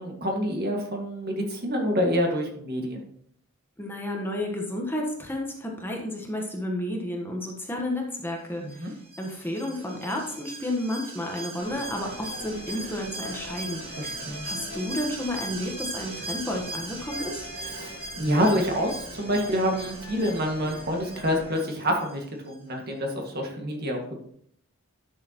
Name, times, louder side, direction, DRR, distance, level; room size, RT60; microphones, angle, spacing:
voice 1, 0.0-3.0 8.6-8.9 14.0-14.5 17.6-24.2, equal, 50° right, 1 dB, 1.8 m, -27 dB
voice 2, 3.8-17.5, left 1 dB, 10° left, 0 dB, 1.1 m, -32 dB
Alarm, 8.7-22.2 22.5-22.6, right 2 dB, 30° right, 1.4 m, -40 dB
sound 1, 11.6-21.5, left 1 dB, 60° left, 2.5 m, -43 dB
11.0 x 6.5 x 2.9 m, 0.65 s
head